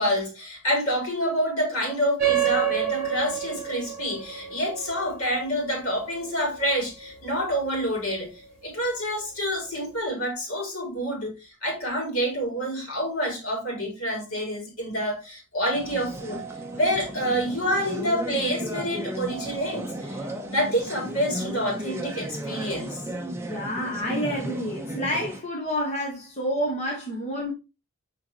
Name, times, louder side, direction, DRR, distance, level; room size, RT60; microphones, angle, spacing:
voice 1, 0.0-16.4 16.7-20.2 20.5-23.0, equal, 75° left, 4.1 m, -28 dB
sound 1, 2.2-7.1, right 9 dB, 45° right, 3.8 m, -28 dB
sound 2, 15.7-25.4, equal, 10° right, 0.9 m, -34 dB
voice 2, 23.5-27.5, equal, 30° left, 1.4 m, -29 dB
6.5 x 5.1 x 3.0 m
head